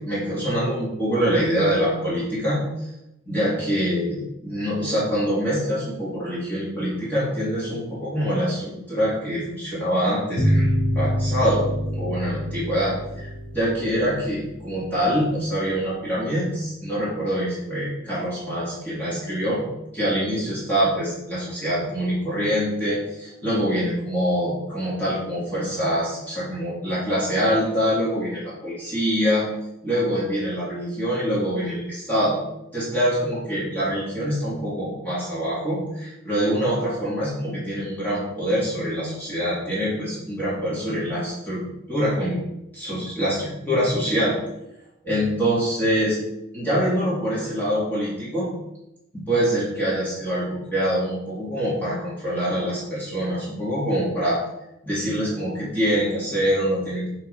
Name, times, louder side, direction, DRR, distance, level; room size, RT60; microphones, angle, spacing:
voice 1, 0.0-2.9 3.3-10.7 11.0-11.6 11.9-19.6 19.9-29.5 29.8-32.4 32.7-41.6 41.9-42.4 42.7-44.4 45.0-46.2 46.5-48.5 49.1-54.4 54.8-57.1, equal, 10° left, -10 dB, 3.5 m, -25 dB
sound 1, 10.4-15.5, equal, 30° left, 2.2 m, -26 dB
9.4 x 4.2 x 5.8 m, 0.87 s
head